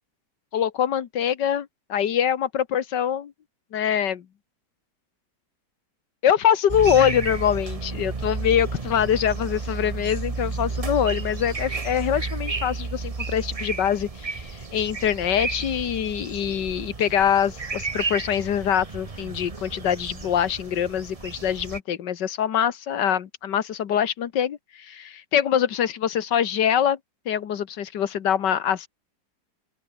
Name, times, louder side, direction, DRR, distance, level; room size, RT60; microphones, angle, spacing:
voice 1, 0.5-3.3 3.7-4.3 6.2-27.0 27.3-28.9, left 9 dB, 90° left, 1.9 m, -24 dB
sound 1, 6.7-21.8, right 4 dB, 25° right, 1.1 m, -32 dB
open air
omnidirectional pair, 1.8 m